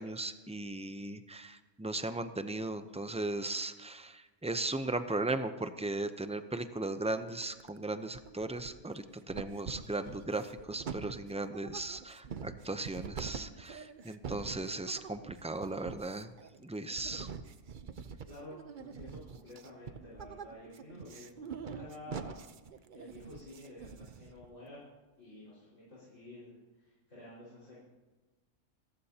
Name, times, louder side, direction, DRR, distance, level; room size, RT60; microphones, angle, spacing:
voice 1, 0.0-16.3 16.6-17.3, right 2 dB, 10° right, 9 dB, 0.4 m, -37 dB
sound 1, 7.3-7.8 8.1-9.0 9.3-24.5, right 6 dB, 45° right, 0.8 m, -45 dB
voice 2, 18.3-22.4 22.9-24.8 25.2-27.8, left 1 dB, 75° left, -9 dB, 5.5 m, -51 dB
28.5 x 14.5 x 2.9 m, 1.2 s
omnidirectional pair, 1.3 m